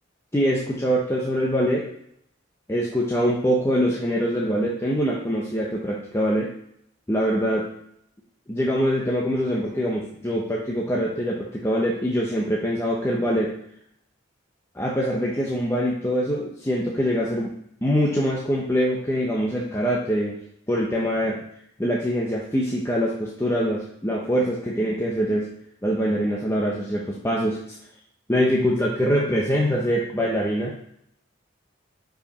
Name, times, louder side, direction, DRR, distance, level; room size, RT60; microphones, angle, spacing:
voice 1, 0.3-1.9 2.7-6.5 7.1-7.7 8.5-13.5 14.7-17.5 17.8-20.4 20.7-21.4 21.8-25.5 25.8-27.6 28.3-30.8, equal, 15° left, -4 dB, 0.9 m, -24 dB
5.6 x 5.1 x 5.1 m, 0.71 s
head